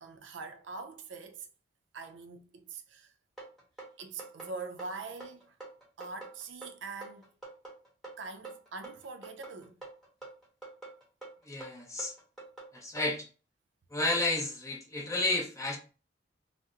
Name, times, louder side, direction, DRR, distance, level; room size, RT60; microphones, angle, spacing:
voice 1, 0.0-1.5 1.9-3.1 4.0-5.5 6.0-7.3 8.2-9.8, right 4 dB, 85° right, 0.5 m, -43 dB
sound 1, 3.4-13.1, right 3 dB, ahead, 1.2 m, -47 dB
voice 2, 11.4-12.1 12.7-13.3 13.9-15.8, left 2 dB, 15° left, 0.7 m, -31 dB
2.8 x 2.1 x 3.5 m
head